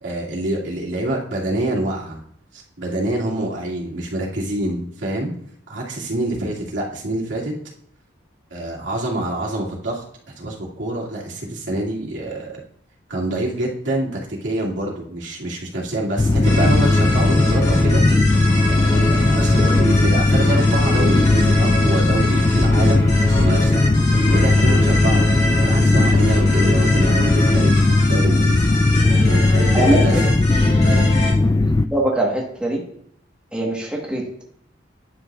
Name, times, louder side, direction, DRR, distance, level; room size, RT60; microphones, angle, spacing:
voice 1, 0.0-2.2 2.5-5.3 5.7-7.5 8.5-10.0 10.4-12.6 13.1-18.0 18.7-25.2 25.6-28.7 29.2-30.1 30.8-31.1, right 1 dB, 80° right, -4 dB, 2.4 m, -26 dB
sound 1, 16.2-31.9, left 2 dB, 20° left, 0.3 m, -17 dB
sound 2, 16.4-31.3, left 1 dB, 35° left, 2.0 m, -26 dB
voice 2, 29.7-30.2 31.6-32.8 33.5-34.4, right 1 dB, 5° right, -2 dB, 1.3 m, -22 dB
10.0 x 6.3 x 2.4 m, 0.68 s
head